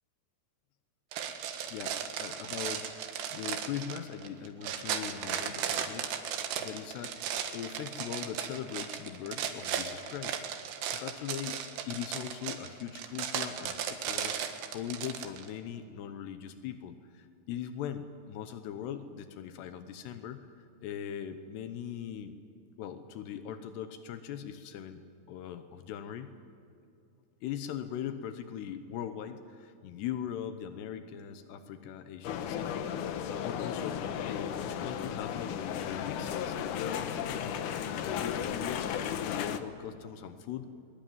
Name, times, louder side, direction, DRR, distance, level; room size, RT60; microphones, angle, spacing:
sound 1, 1.1-15.5, right 8 dB, 75° right, 3.6 m, -36 dB
voice 1, 1.7-7.2 7.5-10.4 10.9-22.4 22.8-26.4 27.4-37.5 37.8-40.7, left 9 dB, 85° left, 9 dB, 3.1 m, -40 dB
sound 2, 32.2-39.6, left 8 dB, 70° left, 2.0 m, -34 dB
22.5 x 22.5 x 9.4 m, 2.6 s
omnidirectional pair, 4.8 m